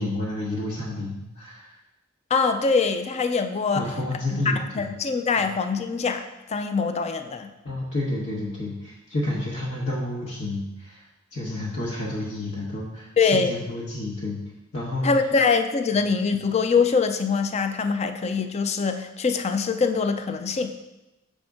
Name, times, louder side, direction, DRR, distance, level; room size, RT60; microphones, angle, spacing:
voice 1, 0.0-1.7 3.7-4.9 5.4-5.5 7.6-11.0 11.3-14.4 14.7-15.1, left 1 dB, 60° left, -7 dB, 1.1 m, -30 dB
voice 2, 2.3-3.8 4.6-6.2 6.5-7.5 13.2-13.5 15.0-20.9, left 5 dB, 35° left, 8 dB, 0.4 m, -23 dB
6.4 x 5.1 x 3.6 m, 0.98 s
head